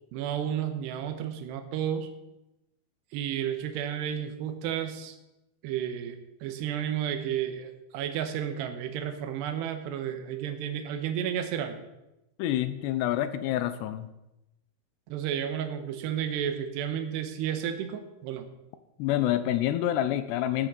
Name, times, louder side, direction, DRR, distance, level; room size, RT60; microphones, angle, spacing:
voice 1, 0.1-2.1 3.1-5.2 5.6-11.8 15.1-18.5, right 9 dB, 80° right, 7 dB, 3.2 m, -32 dB
voice 2, 12.4-14.1 19.0-20.7, left 12 dB, 80° left, 12 dB, 2.9 m, -27 dB
16.5 x 6.2 x 7.0 m, 0.94 s
omnidirectional pair, 4.9 m